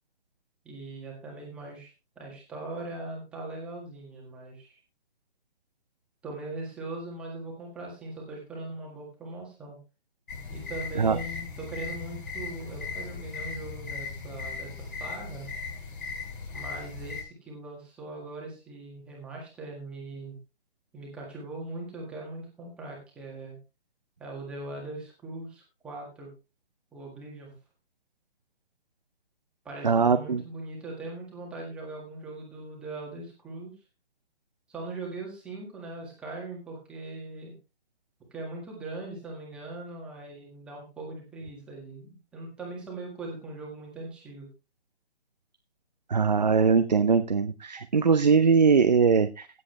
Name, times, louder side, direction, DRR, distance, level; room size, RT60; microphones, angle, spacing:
voice 1, 0.7-4.8 6.2-9.8 10.5-15.5 16.5-20.4 20.9-23.6 24.2-26.3 26.9-27.5 29.7-33.7 34.7-37.5 38.3-44.5, right 2 dB, 5° right, -2 dB, 1.7 m, -40 dB
sound 1, 10.3-17.2, left 4 dB, 50° left, 6.4 m, -38 dB
voice 2, 29.8-30.4 46.1-49.5, right 5 dB, 40° right, 9 dB, 0.6 m, -21 dB
16.0 x 7.5 x 3.2 m, 0.28 s
hypercardioid pair, 175°, 33 cm